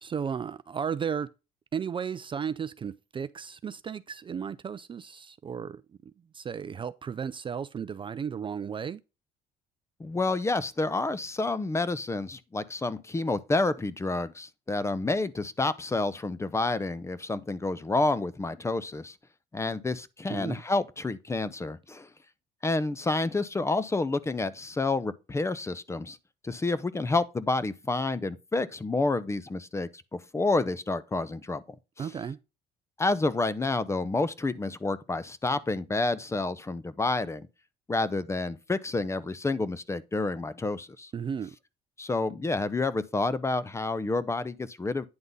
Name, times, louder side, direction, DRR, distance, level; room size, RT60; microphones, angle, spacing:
voice 1, 0.0-1.3 1.7-9.0 20.3-20.6 32.0-32.4 41.1-41.6, right 7 dB, 30° right, 0.4 m, -34 dB
voice 2, 10.0-19.1 19.5-22.1 22.6-26.2 26.4-31.6 32.0-32.1 33.0-37.5 37.9-41.1 42.0-45.1, left 3 dB, 15° left, 0.6 m, -29 dB
9.6 x 3.8 x 5.3 m
cardioid pair, 110°, 17 cm